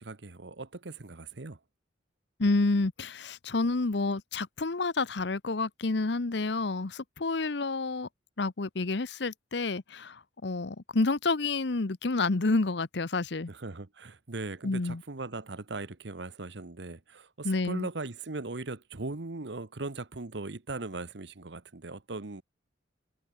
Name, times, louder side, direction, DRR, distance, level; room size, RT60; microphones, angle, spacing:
voice 1, 0.0-1.6 13.5-22.4, right 3 dB, 65° right, 1.1 m, -39 dB
voice 2, 2.4-8.1 8.4-13.5 14.6-15.0 17.4-17.9, left 3 dB, 60° left, 0.9 m, -29 dB
head